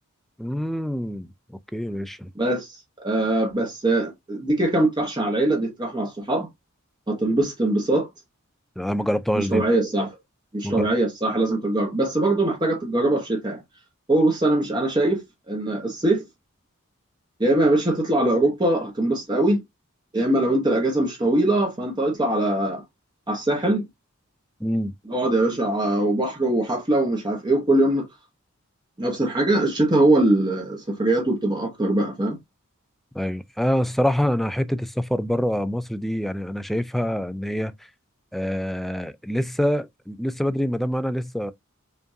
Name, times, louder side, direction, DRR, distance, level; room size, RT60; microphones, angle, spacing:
voice 1, 0.4-1.3 1.7-2.3 8.8-9.6 10.6-10.9 24.6-24.9 33.1-37.7 38.3-41.5, equal, ahead, 0.3 m, -25 dB
voice 2, 2.4-6.5 7.1-8.1 9.4-10.1 10.5-13.6 14.1-16.2 17.4-19.6 20.1-22.8 23.3-23.8 25.1-28.1 29.0-32.4, right 1 dB, 20° right, 1.0 m, -22 dB
5.1 x 2.5 x 2.6 m
head